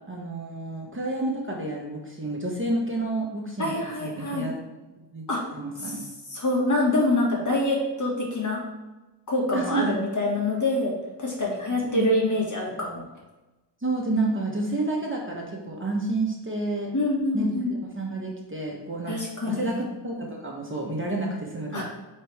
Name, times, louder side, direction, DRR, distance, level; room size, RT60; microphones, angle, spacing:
voice 1, 0.1-4.6 5.1-5.2 5.5-6.0 9.5-10.0 11.8-12.0 13.8-16.9 17.3-19.1 19.5-21.8, right 2 dB, 25° right, -2 dB, 1.3 m, -29 dB
voice 2, 3.6-4.5 5.3-5.4 5.8-8.6 9.3-10.9 11.2-13.0 16.9-17.8 19.1-19.8 21.7-21.8, left 2 dB, 40° left, -2 dB, 1.8 m, -26 dB
8.4 x 3.4 x 3.5 m, 1.1 s
wide cardioid pair, 75°, 46 cm